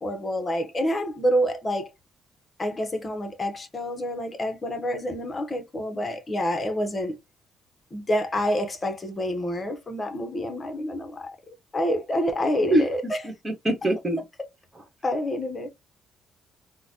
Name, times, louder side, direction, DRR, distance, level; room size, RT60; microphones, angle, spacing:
voice 1, 0.0-1.9 2.6-7.1 7.9-11.3 11.7-13.0 15.0-15.7, equal, 30° left, 0.9 m, -27 dB
voice 2, 12.7-14.2 14.7-14.8, right 1 dB, 20° right, 1.4 m, -25 dB
3.9 x 2.2 x 2.8 m
cardioid pair, 90°, 0 cm